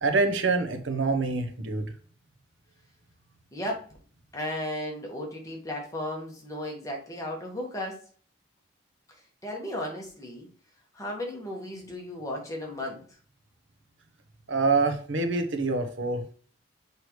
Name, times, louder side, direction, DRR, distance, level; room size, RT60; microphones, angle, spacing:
voice 1, 0.0-1.9 14.5-16.2, right 3 dB, 80° right, 6 dB, 1.0 m, -26 dB
voice 2, 3.5-3.9 4.3-8.0 9.4-10.5 10.9-13.0, left 1 dB, 15° left, -1 dB, 1.5 m, -35 dB
6.4 x 4.8 x 3.2 m, 0.42 s
head